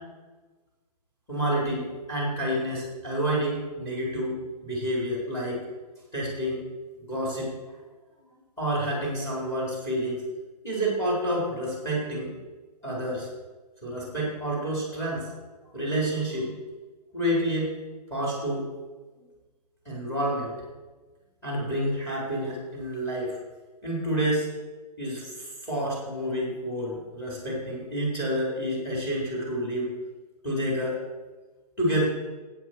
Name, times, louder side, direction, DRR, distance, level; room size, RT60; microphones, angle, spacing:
voice 1, 1.3-4.3 4.6-5.6 6.1-6.6 7.0-7.5 8.2-10.2 10.6-12.3 12.8-13.3 13.8-15.3 15.7-16.5 17.1-17.7 18.1-18.7 19.8-20.5 21.4-23.3 23.8-24.5 25.0-29.9 30.4-31.0 31.8-32.1, right 1 dB, 10° left, -4 dB, 4.5 m, -29 dB
15.5 x 8.6 x 4.8 m, 1.3 s
hypercardioid pair, 165°, 21 cm